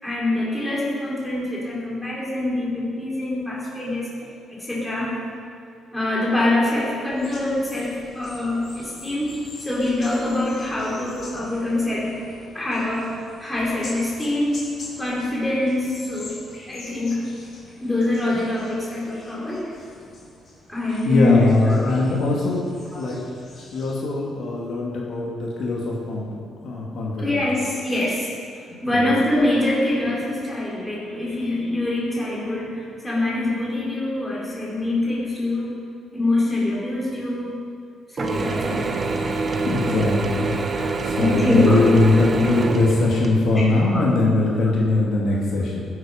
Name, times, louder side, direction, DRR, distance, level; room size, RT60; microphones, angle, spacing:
voice 1, 0.0-4.1 4.5-5.2 5.9-9.3 9.6-12.2 12.5-13.1 13.4-14.7 15.0-16.3 16.7-17.2 17.8-19.6 20.7-22.0 27.2-28.3 28.8-35.8 36.1-37.6 38.1-39.3 41.1-41.9 43.9-44.1, left 2 dB, 10° left, -6 dB, 4.5 m, -24 dB
sound 1, 7.1-23.9, left 2 dB, 35° left, 4.6 m, -44 dB
voice 2, 21.0-23.2 23.7-27.4 28.7-29.1 39.6-45.9, left 2 dB, 55° left, -3 dB, 2.4 m, -21 dB
Mechanisms / Drill, 38.2-43.7, right 3 dB, 30° right, 1.2 m, -26 dB
20.5 x 11.0 x 5.2 m, 2.3 s
cardioid pair, 160°, 0 cm